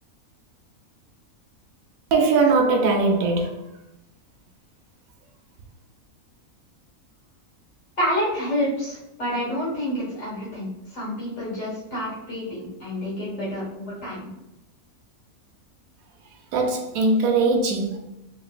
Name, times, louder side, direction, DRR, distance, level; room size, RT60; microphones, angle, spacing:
voice 1, 2.1-3.7 16.5-18.0, right 3 dB, 75° right, 1.0 m, -20 dB
voice 2, 8.0-14.3, equal, 60° left, 1.7 m, -28 dB
2.9 x 2.9 x 2.4 m
omnidirectional pair, 1.5 m